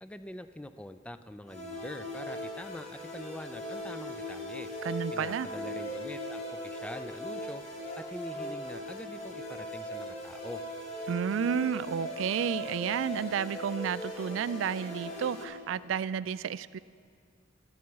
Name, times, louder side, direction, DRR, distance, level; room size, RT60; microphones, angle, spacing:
voice 1, 0.0-4.7 5.1-7.6 8.0-10.6, left 1 dB, 5° left, 11 dB, 0.3 m, -44 dB
sound 1, 1.5-15.4, left 1 dB, 35° left, 2.0 m, -39 dB
voice 2, 4.8-5.5 11.1-16.8, right 7 dB, 90° right, 17 dB, 0.3 m, -31 dB
21.5 x 7.3 x 4.7 m, 2.3 s
head